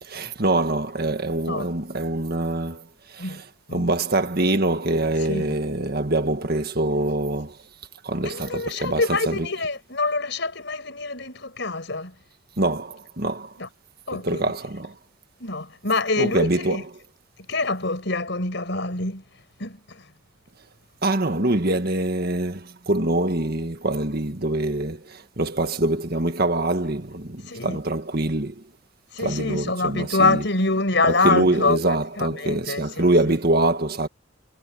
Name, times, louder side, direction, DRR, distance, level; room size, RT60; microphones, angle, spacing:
voice 1, 0.0-3.4 3.7-7.6 8.0-9.5 12.6-13.5 14.1-15.0 16.2-16.9 21.0-28.6 29.2-30.4 31.0-34.1, right 2 dB, 50° right, 1.8 m, -24 dB
voice 2, 8.2-12.1 13.6-13.7 14.1-14.4 15.4-16.8 17.5-19.2 19.6-20.0 27.5-27.8 29.1-33.1, left 3 dB, 60° left, 6.4 m, -25 dB
head